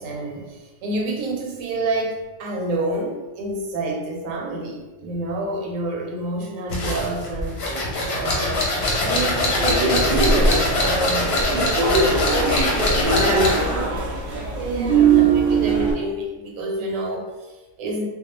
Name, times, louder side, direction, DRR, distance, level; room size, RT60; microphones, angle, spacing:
voice 1, 0.0-8.6 9.0-18.1, right 2 dB, 80° right, 0 dB, 0.9 m, -29 dB
sound 1, 6.7-13.7, left 2 dB, 60° left, 0.8 m, -23 dB
sound 2, 9.6-15.9, right 4 dB, 60° right, 0.6 m, -21 dB
2.3 x 2.2 x 2.9 m, 1.2 s
omnidirectional pair, 1.4 m